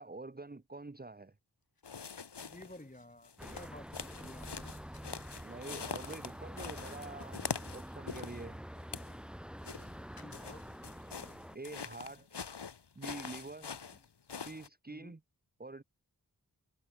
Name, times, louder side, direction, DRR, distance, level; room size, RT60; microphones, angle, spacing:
voice 1, 0.0-1.3 5.4-7.4 7.7-8.6 11.5-12.3 12.9-13.7 14.4-15.2 15.6-15.8, right 3 dB, 25° right, 1.3 m, -46 dB
sound 1, 1.6-10.9, left 3 dB, 60° left, 6.9 m, -66 dB
sound 2, 1.8-2.8 3.2-8.4 8.8-9.2 9.6-14.7, left 6 dB, 90° left, 2.6 m, -44 dB
voice 2, 2.4-4.8 9.9-10.6 13.9-14.0 14.9-15.1, left 1 dB, 20° left, 6.1 m, -53 dB
sound 3, 3.4-11.6, equal, ahead, 2.8 m, -47 dB
cardioid pair, 40°, 40 cm